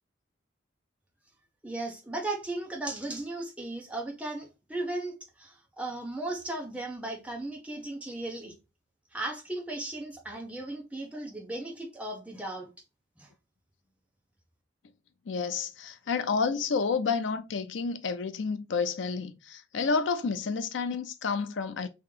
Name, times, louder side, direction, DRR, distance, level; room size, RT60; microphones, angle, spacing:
voice 1, 1.6-8.5 9.1-12.7 13.2-13.3, right 2 dB, 5° right, 0.7 m, -36 dB
voice 2, 15.3-21.9, left 5 dB, 75° left, 0.4 m, -30 dB
3.0 x 2.8 x 3.6 m
head